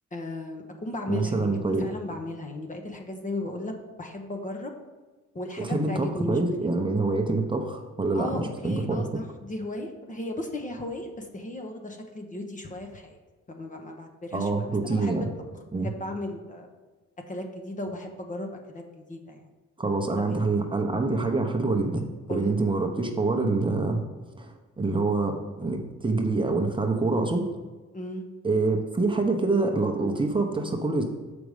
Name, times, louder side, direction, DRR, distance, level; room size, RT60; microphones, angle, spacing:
voice 1, 0.1-4.7 5.3-6.4 8.1-13.2 13.5-15.2 15.8-16.7 17.3-19.4 20.1-20.4 22.3-22.5 27.9-28.2, left 1 dB, 25° left, 3 dB, 0.9 m, -36 dB
voice 2, 1.1-1.9 5.6-9.0 14.3-15.3 15.7-15.9 19.8-24.0 24.4-27.4 28.4-31.0, right 3 dB, 15° right, 2 dB, 0.8 m, -26 dB
6.8 x 5.2 x 4.9 m, 1.3 s
cardioid pair, 90°, 30 cm